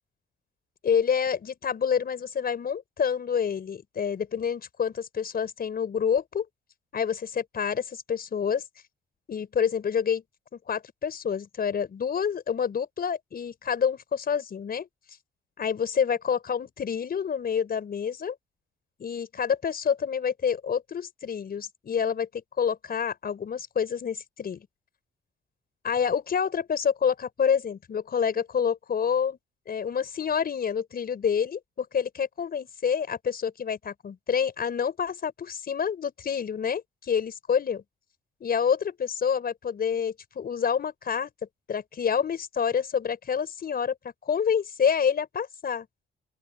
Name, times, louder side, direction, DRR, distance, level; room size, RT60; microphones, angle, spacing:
voice 1, 0.8-6.5 6.9-8.6 9.3-10.2 10.5-14.9 15.6-18.4 19.0-24.7 25.8-29.4 29.7-37.8 38.4-41.3 41.7-44.0 44.2-45.9, left 7 dB, 50° left, 5.3 m, -28 dB
open air
cardioid pair, 90°, 20 cm